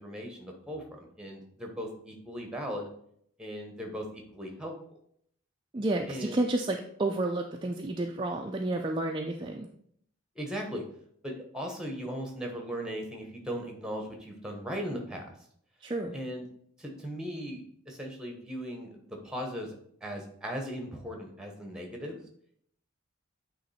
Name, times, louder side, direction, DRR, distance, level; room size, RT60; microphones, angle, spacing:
voice 1, 0.0-2.9 3.4-4.7 6.1-6.4 10.3-10.8 11.2-15.3 16.1-16.5 16.8-19.8 20.0-22.2, equal, 5° right, 2 dB, 1.0 m, -38 dB
voice 2, 5.7-9.7 15.8-16.1, right 2 dB, 25° right, 2 dB, 0.4 m, -31 dB
8.7 x 3.1 x 4.2 m, 0.66 s
head